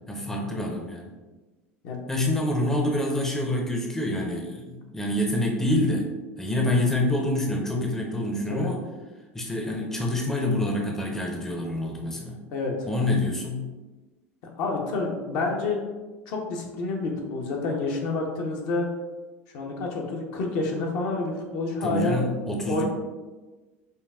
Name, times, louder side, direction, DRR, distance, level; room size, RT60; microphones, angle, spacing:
voice 1, 0.1-1.1 2.1-6.1 6.4-8.8 9.3-12.4 12.9-13.7 21.8-22.8, left 1 dB, 5° left, 0 dB, 0.6 m, -26 dB
voice 2, 12.5-12.9 14.6-15.8 16.3-18.9 19.5-22.2 22.7-22.8, left 3 dB, 55° left, 0 dB, 0.7 m, -28 dB
5.2 x 2.3 x 2.3 m, 1.2 s
figure-of-eight pair, 75°, 7 cm